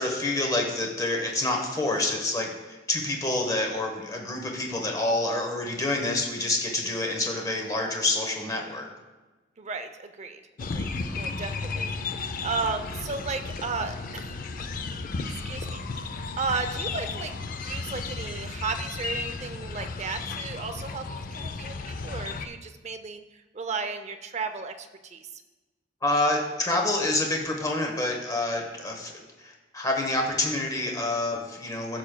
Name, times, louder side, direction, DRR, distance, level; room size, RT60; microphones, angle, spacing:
voice 1, 0.0-8.9 11.1-11.4 26.0-32.0, left 2 dB, 20° left, 1 dB, 0.9 m, -28 dB
voice 2, 9.6-10.4 10.7-11.9 12.4-14.4 14.7-14.9 15.3-17.3 17.6-25.4, right 4 dB, 40° right, 7 dB, 0.5 m, -34 dB
sound 1, 10.6-22.5, left 4 dB, 50° left, 0.4 m, -34 dB
14.5 x 6.2 x 2.2 m, 1.2 s
head